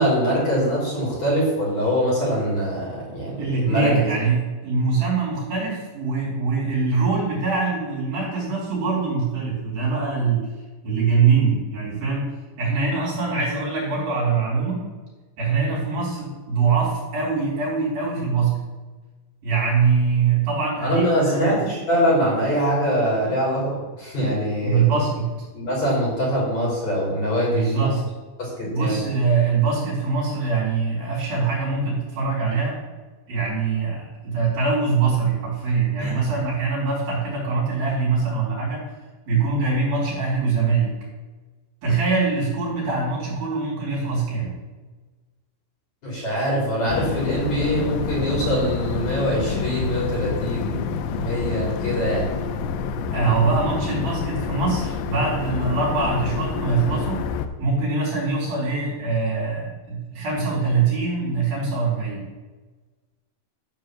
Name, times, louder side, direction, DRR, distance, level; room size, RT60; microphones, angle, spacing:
voice 1, 0.0-3.9 20.8-24.9 25.5-27.9 28.4-29.1 36.0-36.1 46.0-52.3, equal, 40° left, -5 dB, 4.4 m, -23 dB
voice 2, 3.4-10.5 10.8-12.3 12.6-14.8 15.4-18.6 19.4-21.6 23.2-23.3 24.6-25.3 27.5-28.0 28.6-32.8 33.3-38.8 39.3-40.9 41.8-44.5 53.1-57.3 57.6-62.2, right 4 dB, 55° right, -6 dB, 5.4 m, -23 dB
sound 1, 46.9-57.5, left 6 dB, 85° left, 2.9 m, -28 dB
13.0 x 4.7 x 7.4 m, 1.3 s
omnidirectional pair, 5.3 m